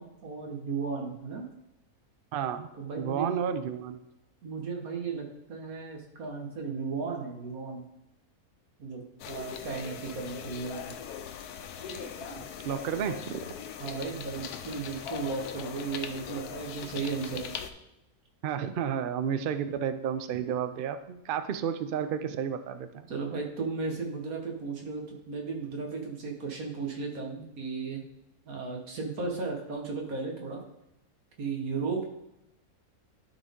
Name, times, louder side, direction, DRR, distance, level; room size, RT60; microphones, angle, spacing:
voice 1, 0.0-1.4 2.8-3.4 4.4-7.8 8.8-11.0 13.8-17.5 23.1-28.0 28.4-30.6 31.4-32.0, right 4 dB, 70° right, 1 dB, 1.8 m, -35 dB
voice 2, 2.3-2.7 3.0-4.0 11.9-13.5 18.4-23.1, right 8 dB, 85° right, 10 dB, 0.4 m, -32 dB
sound 1, 9.2-17.7, left 8 dB, 90° left, 1.2 m, -40 dB
12.0 x 4.1 x 3.6 m, 0.88 s
omnidirectional pair, 1.6 m